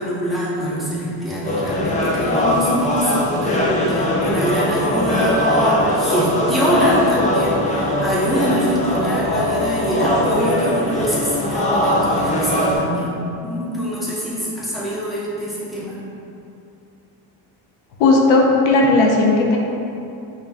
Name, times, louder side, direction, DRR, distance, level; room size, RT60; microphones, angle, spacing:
voice 1, 0.0-16.0, equal, ahead, -9 dB, 1.0 m, -24 dB
sound 1, 1.4-12.8, left 1 dB, 20° left, 0.4 m, -20 dB
voice 2, 18.0-19.6, left 3 dB, 90° left, -1 dB, 0.7 m, -15 dB
5.3 x 3.2 x 2.3 m, 2.7 s
cardioid pair, 115°, 46 cm